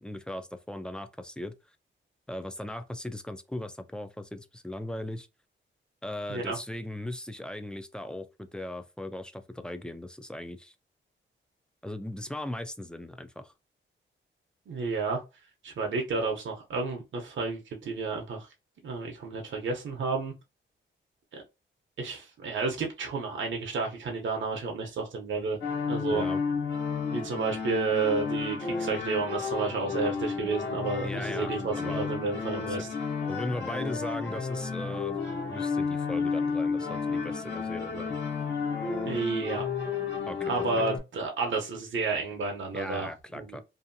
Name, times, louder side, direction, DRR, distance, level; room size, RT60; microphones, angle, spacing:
voice 1, 0.0-1.5 2.3-5.3 6.0-10.7 11.8-13.5 26.1-26.4 31.0-31.5 31.8-32.1 32.7-32.9 33.3-35.2 35.5-38.2 40.3-40.8 42.7-43.6, left 1 dB, 5° left, 0.3 m, -38 dB
voice 2, 14.7-15.2 15.6-18.5 18.8-20.3 22.0-25.6 25.9-26.3 27.1-32.9 39.1-39.6 40.5-43.6, right 4 dB, 70° right, 0.7 m, -31 dB
sound 1, 25.6-41.0, left 5 dB, 60° left, 1.1 m, -32 dB
2.7 x 2.4 x 2.6 m
wide cardioid pair, 110°, 21 cm